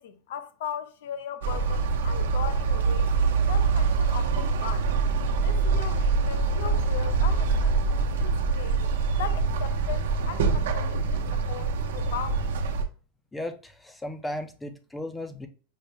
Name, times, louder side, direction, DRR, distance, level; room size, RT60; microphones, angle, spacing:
voice 1, 0.0-3.1 3.5-4.9 5.4-8.8 9.2-12.5, left 10 dB, 75° left, 0.6 m, -38 dB
sound 1, 1.4-12.8, right 4 dB, 90° right, 0.8 m, -25 dB
voice 2, 13.3-15.5, left 1 dB, 10° left, 0.6 m, -35 dB
5.5 x 2.1 x 3.3 m
supercardioid pair, 150°, 0 cm